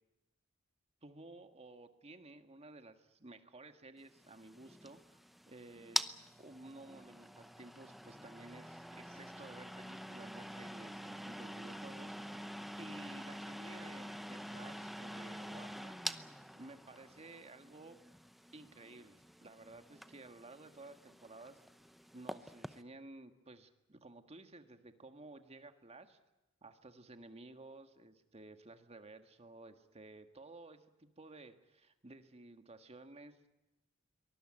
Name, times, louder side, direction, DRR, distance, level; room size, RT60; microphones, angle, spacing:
voice 1, 1.0-5.2 5.5-6.1 6.4-12.4 12.8-16.0 16.5-18.0 18.5-21.6 22.1-26.2 26.6-33.5, right 2 dB, 30° right, 8 dB, 1.7 m, -54 dB
sound 1, 4.1-22.8, equal, ahead, 0.8 m, -46 dB
23.5 x 19.5 x 8.9 m, 1.0 s
head